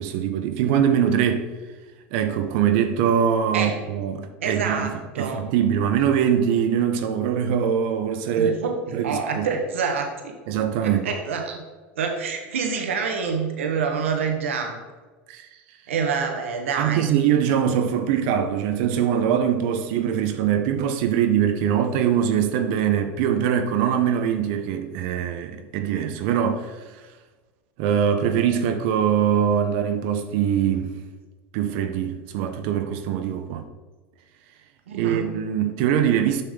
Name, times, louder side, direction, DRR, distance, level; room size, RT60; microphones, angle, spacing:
voice 1, 0.0-1.5 2.1-8.5 8.9-9.5 10.5-11.0 15.3-15.5 16.8-27.0 27.8-30.9 31.5-33.6 34.9-36.4, right 8 dB, 65° right, 0.7 m, -22 dB
voice 2, 4.4-5.4 8.3-8.7 9.0-10.3 10.8-11.6 12.0-14.8 15.9-17.1 34.9-35.3, right 5 dB, 85° right, 1.1 m, -27 dB
6.8 x 5.8 x 3.6 m
hypercardioid pair, 100°, 7 cm